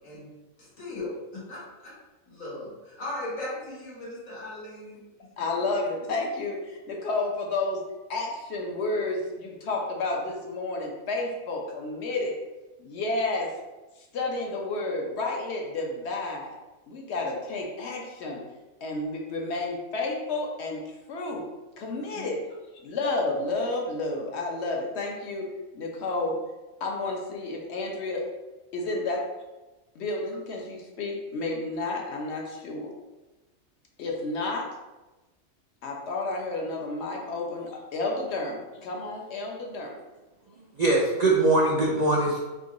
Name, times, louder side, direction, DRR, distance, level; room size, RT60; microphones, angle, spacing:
voice 1, 0.0-0.3 0.6-1.9 2.3-5.0 22.1-22.3, left 1 dB, 75° left, -6 dB, 1.9 m, -38 dB
voice 2, 5.4-7.8 8.1-12.3 12.8-13.5 14.1-16.5 16.9-18.4 18.8-20.8 21.1-21.4 21.8-22.4 22.8-25.5 25.7-26.4 26.8-28.2 28.7-29.2 29.9-32.9 34.0-34.6 35.8-39.9, left 2 dB, 55° left, 0 dB, 1.0 m, -31 dB
voice 3, 40.8-42.4, right 2 dB, 65° right, -2 dB, 0.4 m, -22 dB
3.7 x 3.0 x 3.7 m, 1.1 s
omnidirectional pair, 1.4 m